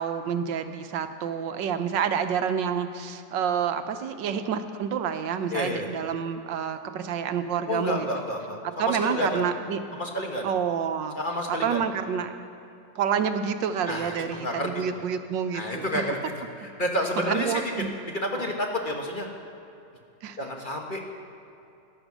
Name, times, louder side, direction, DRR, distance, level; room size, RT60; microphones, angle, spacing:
voice 1, 0.0-8.1 8.8-9.8 10.4-11.2 11.6-12.3 12.9-16.0 17.3-17.9 18.3-18.5 20.2-20.4, right 7 dB, 80° right, 9 dB, 1.5 m, -28 dB
voice 2, 5.5-5.9 7.7-9.4 9.9-10.4 11.1-11.8 13.9-14.8 15.5-16.2 16.6-17.9 18.1-19.3 20.4-21.0, left 1 dB, 30° left, 1 dB, 1.3 m, -30 dB
15.0 x 11.0 x 6.2 m, 2.7 s
omnidirectional pair, 2.0 m